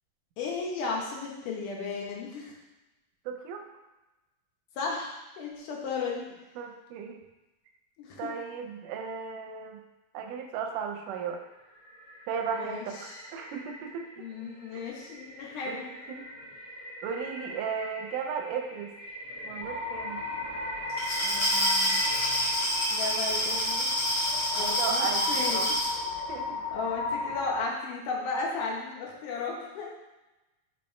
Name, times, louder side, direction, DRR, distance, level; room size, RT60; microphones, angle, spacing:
voice 1, 0.4-2.5 4.8-6.2 8.0-8.3 12.5-13.2 14.2-15.9 21.2-22.0 22.9-23.9 24.5-25.7 26.7-29.9, left 4 dB, 70° left, -1 dB, 2.3 m, -35 dB
voice 2, 3.3-3.6 6.6-7.2 8.2-9.8 10.1-11.4 12.3-14.1 15.7-16.3 17.0-18.9 19.5-20.2 24.5-25.8 26.3-26.6, right 6 dB, 80° right, 3 dB, 2.0 m, -35 dB
sound 1, 11.3-24.5, equal, 35° left, 2.5 m, -42 dB
sound 2, 19.6-27.7, left 3 dB, 90° left, 2.6 m, -34 dB
Glass, 20.9-25.9, equal, 55° left, 1.4 m, -28 dB
5.5 x 4.0 x 4.3 m, 1.0 s
omnidirectional pair, 4.1 m